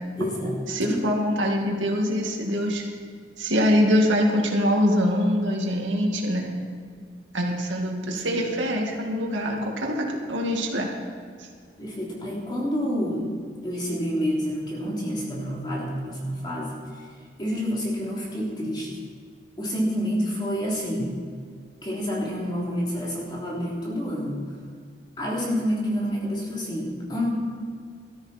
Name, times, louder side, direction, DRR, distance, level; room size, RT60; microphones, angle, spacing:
voice 1, 0.2-1.0 8.1-8.4 11.8-13.3 13.6-17.1 17.4-18.9 19.6-21.1 21.8-24.4 25.2-27.3, equal, 25° left, -4 dB, 3.3 m, -28 dB
voice 2, 0.7-2.9 3.4-6.6 7.3-10.9 11.4-11.5, equal, 90° right, 0 dB, 2.3 m, -24 dB
18.5 x 13.5 x 4.4 m, 2.1 s
head